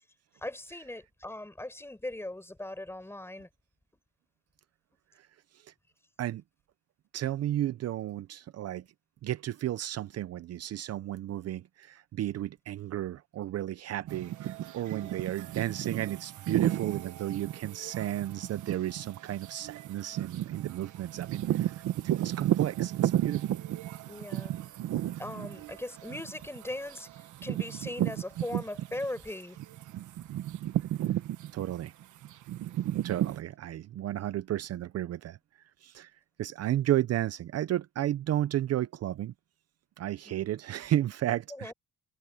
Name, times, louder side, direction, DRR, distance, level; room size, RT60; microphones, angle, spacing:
voice 1, 0.4-3.5 15.0-15.4 24.1-24.5 25.2-29.6 30.2-30.3 40.2-40.5 41.5-41.7, left 1 dB, 10° left, 5.2 m, -39 dB
voice 2, 7.1-8.8 9.2-21.8 22.2-23.6 31.5-31.9 33.0-35.4 35.8-36.1 36.4-39.3 40.0-41.7, right 13 dB, 55° right, 0.6 m, -33 dB
sound 1, 14.1-29.2 29.6-33.4, right 12 dB, 80° right, 1.5 m, -33 dB
cardioid pair, 125°, 30 cm